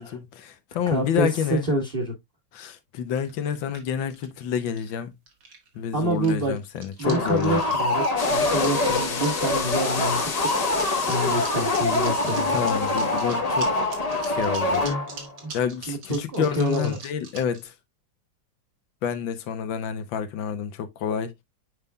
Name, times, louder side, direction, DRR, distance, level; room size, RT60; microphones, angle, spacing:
voice 1, 0.0-1.7 2.5-5.1 5.8-7.6 12.2-13.8 14.2-14.8 15.5-17.7 19.0-21.3, left 8 dB, 80° left, 1.6 m, -29 dB
voice 2, 0.9-2.1 5.9-6.5 7.0-10.2 10.9-12.6 15.4-15.5 15.9-17.0, right 1 dB, 30° right, 1.4 m, -27 dB
sound 1, 3.1-4.9 5.3-5.8 6.0-17.6, right 4 dB, 75° right, 2.5 m, -42 dB
sound 2, 7.0-15.4, left 2 dB, 25° left, 1.0 m, -25 dB
sound 3, 8.2-13.4, left 5 dB, 55° left, 1.8 m, -32 dB
8.0 x 5.3 x 2.2 m
omnidirectional pair, 2.1 m